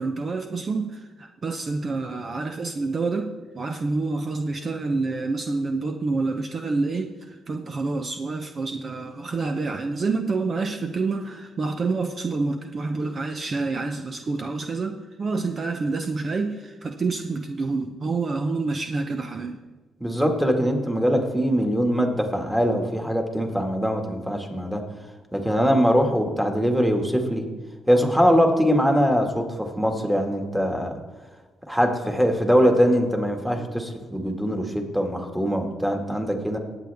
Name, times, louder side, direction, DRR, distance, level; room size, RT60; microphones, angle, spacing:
voice 1, 0.0-19.6, right 3 dB, 40° right, 6 dB, 0.7 m, -28 dB
voice 2, 20.0-24.8 25.3-27.4 27.9-30.9 31.7-36.6, equal, 5° right, 3 dB, 1.9 m, -22 dB
19.0 x 8.0 x 3.5 m, 1.3 s
cardioid pair, 90°, 0 cm